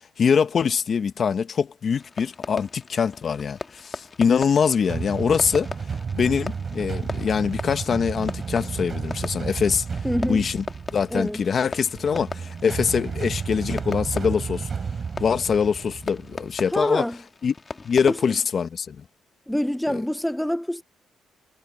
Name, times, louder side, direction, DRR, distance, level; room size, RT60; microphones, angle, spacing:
voice 1, 0.2-5.7 6.1-9.8 10.3-10.6 10.9-14.7 15.2-17.0 17.4-17.5 17.8-19.0, left 6 dB, 50° left, 1.5 m, -23 dB
Fireworks, 2.0-18.5, left 3 dB, 25° left, 2.7 m, -39 dB
sound 1, 4.9-16.8, right 5 dB, 40° right, 4.5 m, -32 dB
voice 2, 10.0-10.5 11.1-11.4 16.7-17.2 18.1-18.4 19.5-20.8, equal, 5° left, 0.6 m, -26 dB
cardioid pair, 90°, 0 cm